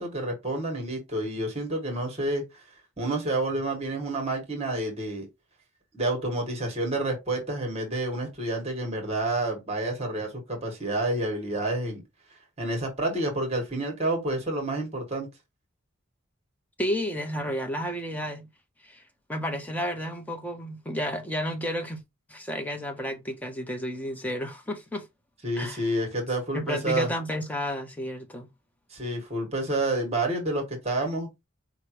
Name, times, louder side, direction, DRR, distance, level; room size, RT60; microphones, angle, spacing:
voice 1, 0.0-2.6 3.0-5.3 5.9-12.0 12.6-15.3 25.4-27.1 28.9-31.5, right 2 dB, 30° right, 1.7 m, -29 dB
voice 2, 16.8-18.5 18.8-19.0 19.3-22.0 22.3-25.1 25.6-25.8 26.5-28.5, equal, 10° left, 0.8 m, -31 dB
4.9 x 3.2 x 3.1 m
head